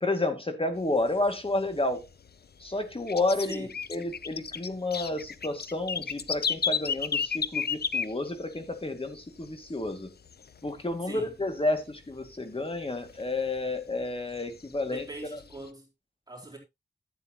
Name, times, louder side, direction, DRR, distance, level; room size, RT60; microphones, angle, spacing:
voice 1, 0.0-2.1 2.6-10.1 10.6-15.1 15.3-15.4, left 2 dB, 30° left, 2.2 m, -30 dB
sound 1, 0.8-2.3 2.7-8.7 9.1-9.2 9.4-10.0 10.3-11.4 11.8-11.9 12.2-12.3 12.8-13.9 14.4-15.7, left 6 dB, 60° left, 0.6 m, -32 dB
voice 2, 11.0-11.3 14.8-15.9 16.3-16.6, right 2 dB, 20° right, 4.1 m, -42 dB
11.5 x 8.9 x 3.0 m
wide cardioid pair, 75°, 19 cm